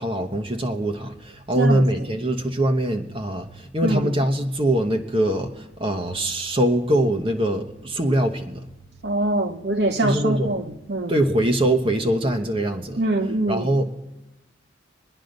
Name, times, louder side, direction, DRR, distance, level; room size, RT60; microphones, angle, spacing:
voice 1, 0.0-8.6 10.0-10.6 11.1-13.9, right 1 dB, 30° right, 1.1 m, -23 dB
voice 2, 9.0-11.1 13.0-13.7, right 2 dB, 60° right, 1.0 m, -23 dB
23.5 x 10.0 x 5.3 m
head